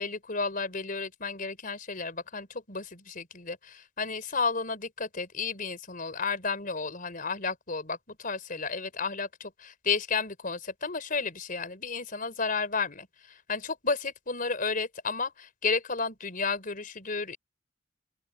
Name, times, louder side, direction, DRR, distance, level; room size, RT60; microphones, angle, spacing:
voice 1, 0.0-17.4, left 4 dB, 50° left, 4.5 m, -32 dB
open air
head